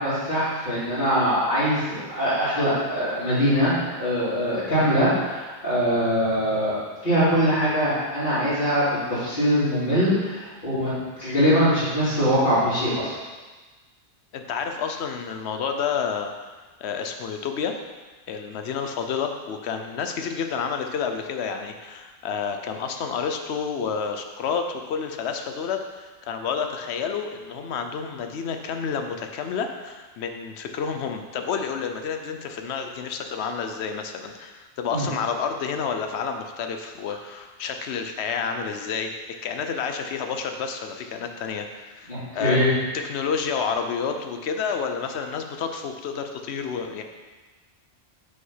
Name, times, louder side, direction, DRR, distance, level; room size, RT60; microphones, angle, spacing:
voice 1, 0.0-8.8 9.1-13.1 34.9-35.0 42.1-42.7, equal, 50° left, -17 dB, 3.2 m, -22 dB
voice 2, 14.3-17.8 18.3-39.1 39.4-42.6 43.1-47.0, left 6 dB, 75° left, 6 dB, 1.0 m, -30 dB
6.3 x 5.7 x 5.6 m, 1.3 s
omnidirectional pair, 1.2 m